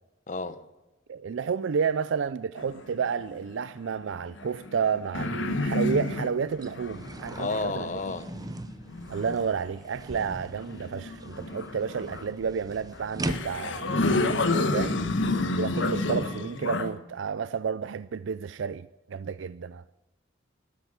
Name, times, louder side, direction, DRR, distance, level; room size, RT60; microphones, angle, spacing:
voice 1, 0.3-0.6 7.4-8.3 14.8-15.1, left 3 dB, 40° left, 1.1 m, -32 dB
voice 2, 1.1-7.9 9.1-14.5 14.7-15.0 15.6-19.8, right 6 dB, 65° right, 0.4 m, -31 dB
sound 1, 2.6-3.5 4.3-9.7 10.6-12.3 13.0-13.1 13.3-16.9, left 2 dB, 65° left, 1.3 m, -30 dB
sound 2, 5.0-5.1 5.5-13.8, right 1 dB, 20° right, 0.8 m, -40 dB
13.0 x 12.5 x 8.1 m
head